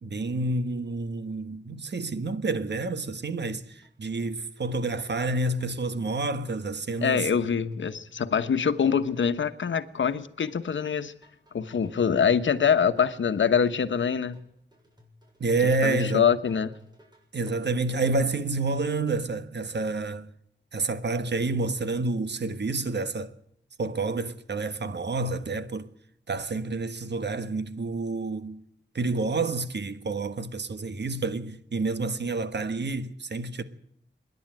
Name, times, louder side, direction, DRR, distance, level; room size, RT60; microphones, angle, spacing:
voice 1, 0.0-7.3 15.4-16.3 17.3-20.3 20.7-23.3 23.8-25.9 26.3-28.6 28.9-33.6, right 3 dB, 65° right, 1.5 m, -29 dB
sound 1, 3.5-17.7, left 1 dB, 20° right, 7.2 m, -59 dB
voice 2, 7.0-11.1 11.5-14.4 15.8-16.7, left 7 dB, 85° left, 1.2 m, -24 dB
25.5 x 11.0 x 9.2 m
cardioid pair, 60°, 19 cm